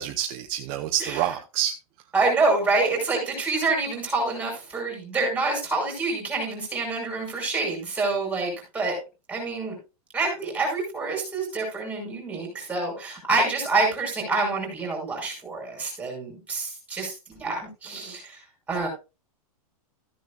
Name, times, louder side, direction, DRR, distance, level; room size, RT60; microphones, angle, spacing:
voice 1, 0.0-1.7, right 11 dB, 30° right, 4 dB, 0.9 m, -27 dB
voice 2, 2.1-9.0 9.3-9.8 10.1-17.1 17.4-18.4 18.7-18.9, right 3 dB, 5° right, 1 dB, 5.8 m, -27 dB
14.5 x 9.4 x 2.5 m, 0.28 s
supercardioid pair, 170°, 19 cm